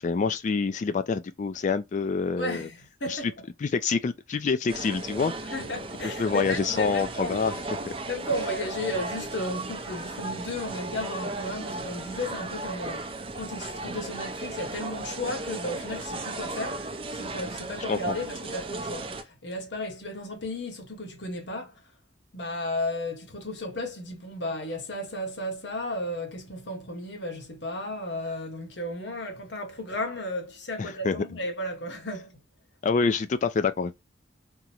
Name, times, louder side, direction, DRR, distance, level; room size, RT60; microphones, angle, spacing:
voice 1, 0.0-2.7 3.1-3.2 3.6-5.5 6.0-7.9 17.9-18.1 30.8-31.2 32.8-34.0, left 5 dB, 45° left, 0.3 m, -27 dB
voice 2, 2.4-3.3 5.5-7.5 8.1-13.1 13.3-16.8 17.1-21.8 22.3-32.4, left 1 dB, 75° left, 1.1 m, -34 dB
sound 1, 4.7-19.2, right 2 dB, 30° right, 0.5 m, -35 dB
3.7 x 2.1 x 2.8 m
head